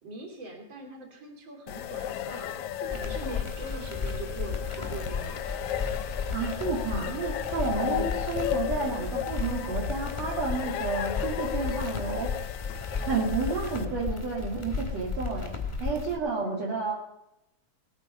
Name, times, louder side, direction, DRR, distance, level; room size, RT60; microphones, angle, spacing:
voice 1, 0.0-2.5 2.8-5.4 7.8-8.2 8.5-8.9 16.4-16.8, right 1 dB, 35° right, 1 dB, 3.3 m, -41 dB
sound 1, 1.7-13.8, left 11 dB, 70° left, 1.8 m, -35 dB
sound 2, 2.9-16.2, left 4 dB, 15° left, 1.0 m, -34 dB
sound 3, 4.8-4.9 7.2-7.3 9.6-9.8 12.0-12.4, right 1 dB, 80° right, 5.2 m, -45 dB
voice 2, 6.3-12.3 13.1-16.9, right 4 dB, 55° right, -2 dB, 3.0 m, -31 dB
20.0 x 9.2 x 5.4 m, 0.85 s
omnidirectional pair, 3.8 m